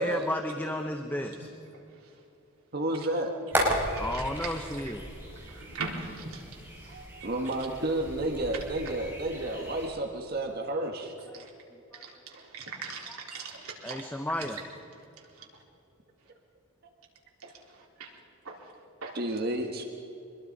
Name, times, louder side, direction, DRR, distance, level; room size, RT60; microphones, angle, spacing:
voice 1, 0.0-1.5 4.0-5.0 11.3-11.4 11.7-12.0 13.8-14.6, left 1 dB, 10° left, 5 dB, 0.9 m, -33 dB
voice 2, 2.7-3.3 6.8-11.1 19.1-19.8, right 1 dB, 45° right, 3 dB, 1.6 m, -31 dB
sound 1, 3.5-9.9, equal, 10° right, 5.3 m, -35 dB
voice 3, 3.6-4.8 5.3-6.5 7.2-7.3 11.3-11.5 11.9-14.0 15.3-15.5 17.4-18.1 18.4-18.7 19.0-19.2, right 4 dB, 80° right, -1 dB, 4.1 m, -41 dB
25.0 x 21.5 x 5.4 m, 2.8 s
head